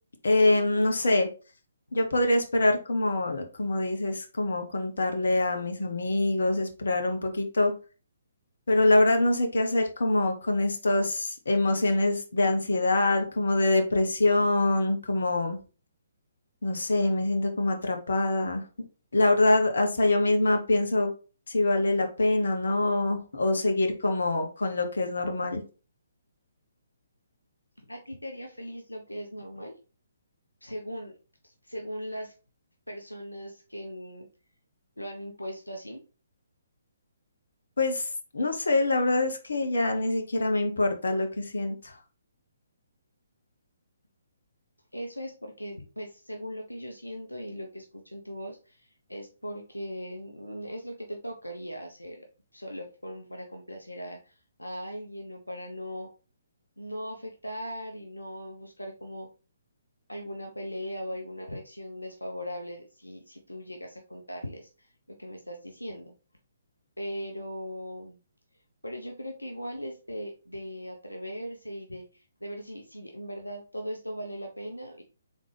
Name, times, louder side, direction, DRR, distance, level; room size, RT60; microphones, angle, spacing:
voice 1, 0.2-1.3 1.9-7.7 8.7-15.6 16.6-18.6 19.1-21.1 21.5-25.6 37.8-38.1 38.3-42.0, left 2 dB, 60° left, 0.9 m, -25 dB
voice 2, 27.9-29.7 30.6-31.1 31.4-32.3 32.9-34.3 35.0-36.0 44.9-52.3 52.5-56.1 56.8-59.3 60.1-66.1 67.0-68.2 68.8-75.0, equal, 85° left, 0.7 m, -39 dB
3.7 x 3.6 x 3.3 m
figure-of-eight pair, 135°, 0 cm